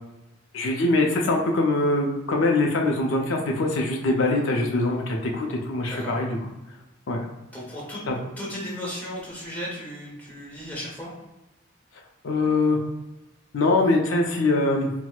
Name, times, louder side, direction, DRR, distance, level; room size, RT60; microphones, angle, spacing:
voice 1, 0.5-6.3 7.1-7.3 8.1-8.2 12.2-12.8 13.5-14.9, left 2 dB, 75° left, 0 dB, 0.4 m, -23 dB
voice 2, 5.9-6.2 7.5-8.0 8.4-11.1, equal, 10° left, -6 dB, 0.9 m, -35 dB
4.3 x 2.0 x 2.3 m, 1.0 s
head